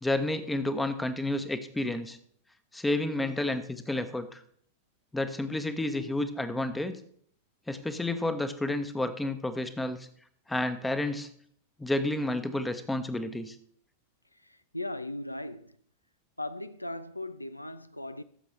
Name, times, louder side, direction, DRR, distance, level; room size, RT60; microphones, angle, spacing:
voice 1, 0.0-2.2 2.7-4.4 5.1-6.9 7.7-10.1 10.5-11.3 11.8-13.5, left 2 dB, 5° left, 0.9 m, -30 dB
voice 2, 14.4-15.8 16.4-18.2, left 1 dB, 85° left, 0.4 m, -38 dB
15.0 x 7.2 x 3.2 m
figure-of-eight pair, 90°, 0 cm